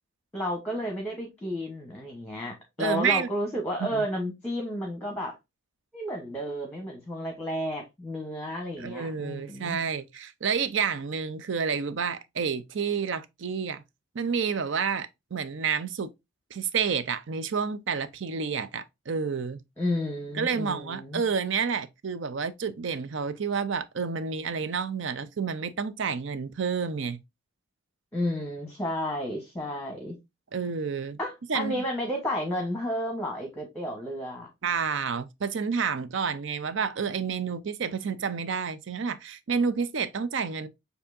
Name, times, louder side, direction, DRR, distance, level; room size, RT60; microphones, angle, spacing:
voice 1, 0.3-5.4 5.9-9.8 19.8-21.2 28.1-30.2 31.2-34.5, equal, 5° left, 1.0 m, -32 dB
voice 2, 2.8-3.3 3.8-4.0 8.8-13.8 14.1-16.1 16.5-19.6 20.3-27.2 30.5-31.2 31.5-31.8 34.6-40.7, right 6 dB, 60° right, 0.5 m, -29 dB
6.9 x 2.7 x 2.6 m
head